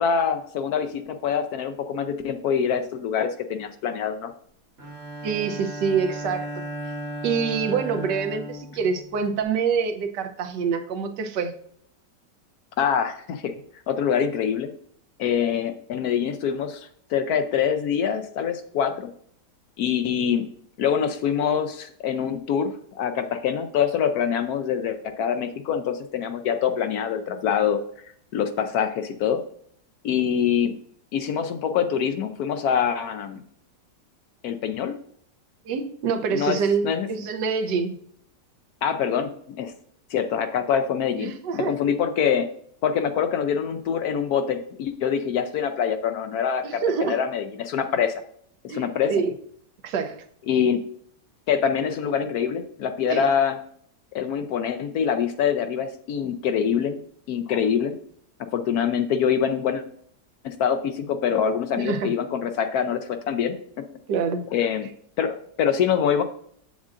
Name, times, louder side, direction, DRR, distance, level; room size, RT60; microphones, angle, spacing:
voice 1, 0.0-4.3 12.8-13.6 13.9-14.7 15.2-18.9 19.8-20.5 20.8-27.8 28.3-29.4 30.0-30.7 31.1-33.4 34.4-35.0 36.3-36.6 36.8-37.1 38.8-39.7 40.1-42.5 42.8-48.1 48.6-49.1 50.5-50.8 51.5-53.6 54.1-57.0 57.3-57.9 58.5-59.8 60.4-63.5 64.5-64.9 65.2-66.2, left 7 dB, 70° left, 9 dB, 1.0 m, -25 dB
Bowed string instrument, 4.8-9.4, right 1 dB, 40° right, 1.2 m, -35 dB
voice 2, 5.2-6.5 7.2-11.5 35.7-37.9 41.2-41.8 46.6-47.2 48.7-49.3 49.8-50.2 53.1-53.2 61.8-62.1 64.1-64.5, right 6 dB, 80° right, 7 dB, 1.3 m, -26 dB
7.4 x 7.3 x 2.5 m, 0.63 s
omnidirectional pair, 1.9 m